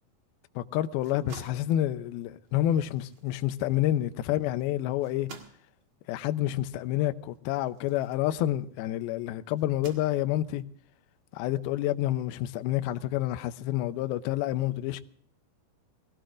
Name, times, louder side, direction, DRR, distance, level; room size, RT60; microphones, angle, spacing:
voice 1, 0.6-5.3 6.1-10.6 11.3-15.0, left 13 dB, 80° left, 2.3 m, -28 dB
sound 1, 0.9-8.9 9.5-10.6, right 5 dB, 55° right, 1.4 m, -52 dB
22.5 x 16.5 x 2.5 m
omnidirectional pair, 5.0 m